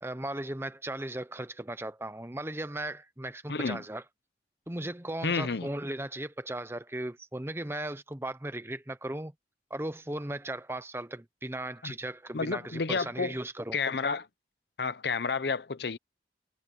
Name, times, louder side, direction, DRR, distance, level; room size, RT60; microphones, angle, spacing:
voice 1, 0.0-4.0 4.7-9.3 9.7-13.8, right 1 dB, 15° right, 0.8 m, -37 dB
voice 2, 3.5-3.8 5.2-5.7 11.8-11.9 12.3-13.3 13.7-14.3 14.8-16.0, left 4 dB, 70° left, 0.7 m, -30 dB
head